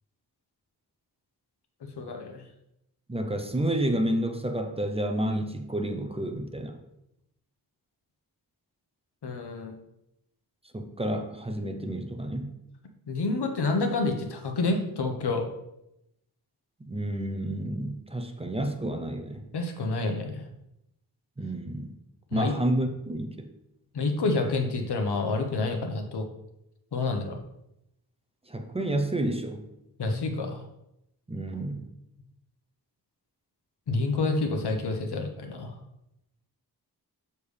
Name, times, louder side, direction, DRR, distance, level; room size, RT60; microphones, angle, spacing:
voice 1, 1.8-2.4 9.2-9.7 13.1-15.5 19.5-20.4 22.3-22.5 23.9-26.3 26.9-27.4 30.0-30.7 33.9-35.8, left 3 dB, 90° left, 5 dB, 1.2 m, -28 dB
voice 2, 3.1-6.8 10.7-12.5 16.8-19.4 21.4-21.9 22.3-23.5 28.5-29.6 31.3-31.8, right 1 dB, 15° right, 5 dB, 0.7 m, -30 dB
7.0 x 6.8 x 3.3 m, 0.83 s
wide cardioid pair, 145°, 39 cm